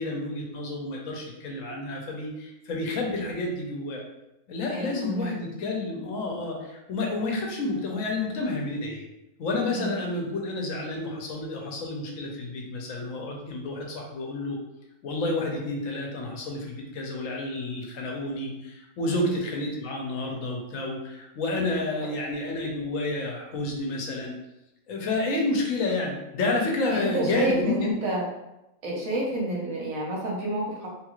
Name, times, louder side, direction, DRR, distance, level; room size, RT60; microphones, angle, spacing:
voice 1, 0.0-4.0 4.5-9.0 9.4-14.6 15.0-24.3 24.9-27.9, left 2 dB, 80° left, 0 dB, 1.1 m, -30 dB
voice 2, 4.7-5.3 9.7-9.9 19.0-19.3 26.9-28.3 28.8-30.9, right 1 dB, 85° right, -3 dB, 1.3 m, -29 dB
3.3 x 3.0 x 2.4 m, 0.91 s
omnidirectional pair, 1.4 m